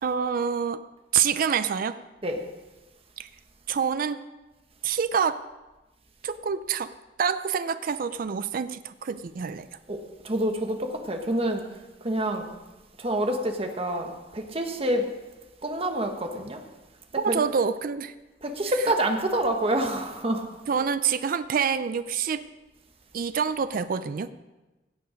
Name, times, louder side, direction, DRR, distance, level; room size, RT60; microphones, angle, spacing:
voice 1, 0.0-0.8 1.1-2.0 3.2-3.3 3.7-4.2 4.8-5.4 6.2-6.9 7.2-9.7 17.2-18.1 20.7-22.4 23.1-24.3, right 6 dB, 55° right, 13 dB, 0.4 m, -26 dB
voice 2, 10.2-11.6 12.0-12.4 13.0-15.0 15.6-16.6 17.3-17.4 18.4-20.4, right 1 dB, 35° right, 4 dB, 1.3 m, -27 dB
16.5 x 7.0 x 5.1 m, 1.1 s
head